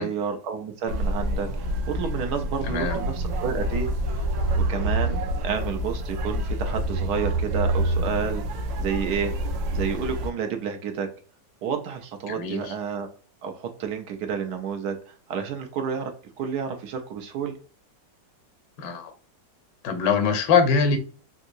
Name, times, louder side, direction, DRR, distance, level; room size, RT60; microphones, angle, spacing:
voice 1, 0.0-4.3 4.7-9.3 9.7-11.1 11.6-13.1 13.4-16.1 16.4-17.6, right 6 dB, 70° right, 5 dB, 1.1 m, -30 dB
sound 1, 0.9-10.3, right 1 dB, 85° right, 1.4 m, -27 dB
voice 2, 2.6-3.0 12.3-12.7 18.8-19.1 19.8-21.0, left 5 dB, 75° left, 7 dB, 1.4 m, -23 dB
3.6 x 2.8 x 2.5 m, 0.39 s
omnidirectional pair, 1.9 m